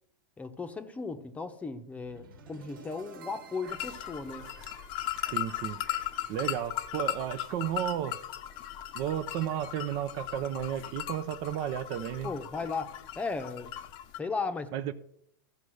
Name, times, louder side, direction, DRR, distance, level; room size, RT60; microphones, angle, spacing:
voice 1, 0.4-4.5 12.2-13.7 14.2-14.9, left 4 dB, 10° left, 0.9 m, -36 dB
sound 1, 2.0-8.1, right 5 dB, 75° right, 1.6 m, -52 dB
sound 2, 3.7-14.2, left 13 dB, 40° left, 0.8 m, -38 dB
voice 2, 5.3-5.8 6.3-8.2 8.9-12.3 14.7-14.9, right 10 dB, 45° right, 0.6 m, -33 dB
14.5 x 5.3 x 6.3 m
hypercardioid pair, 130°, 12 cm